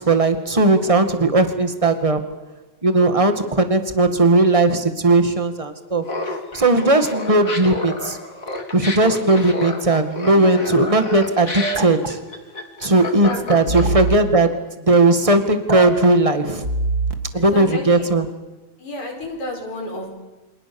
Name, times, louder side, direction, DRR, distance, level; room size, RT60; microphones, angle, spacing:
voice 1, 0.0-2.2 2.8-8.2 8.7-12.2 12.8-16.6 17.3-18.2, right 2 dB, 15° right, 8 dB, 1.6 m, -17 dB
Laughter, 6.0-14.1, left 2 dB, 30° left, 3.3 m, -29 dB
voice 2, 10.2-10.7 13.0-13.4 13.7-14.1 17.3-18.0 18.8-20.1, left 1 dB, 75° left, 2 dB, 6.6 m, -32 dB
sound 1, 11.6-12.1 13.7-14.2 15.7-16.0 16.6-17.1, right 3 dB, 35° right, 2.2 m, -23 dB
29.5 x 25.5 x 7.1 m, 1.1 s
omnidirectional pair, 3.3 m